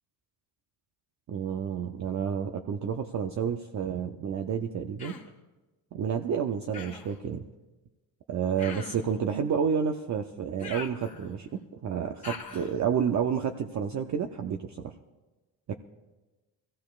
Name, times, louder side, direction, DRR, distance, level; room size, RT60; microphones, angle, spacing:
voice 1, 1.3-5.2 5.9-7.4 8.3-14.9 15.7-15.8, right 7 dB, 40° right, 5 dB, 0.6 m, -30 dB
Human voice, 5.0-5.4 6.7-7.2 8.6-9.2 10.6-11.5 12.2-12.8, left 5 dB, 15° left, 1.6 m, -42 dB
22.0 x 15.5 x 2.4 m, 1.1 s
cardioid pair, 135°, 46 cm